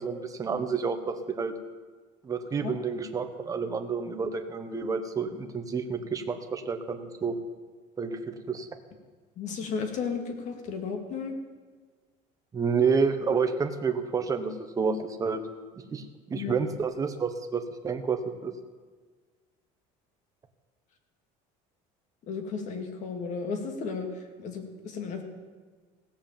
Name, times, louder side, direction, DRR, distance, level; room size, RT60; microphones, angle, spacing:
voice 1, 0.0-1.5 2.2-7.4 8.0-8.7 12.5-15.4 15.9-18.5, right 5 dB, 20° right, 7 dB, 1.1 m, -29 dB
voice 2, 9.4-11.3 16.3-16.5 22.3-24.1 24.4-25.2, left 5 dB, 50° left, 4 dB, 2.1 m, -34 dB
17.0 x 7.4 x 7.3 m, 1.5 s
cardioid pair, 140°, 15 cm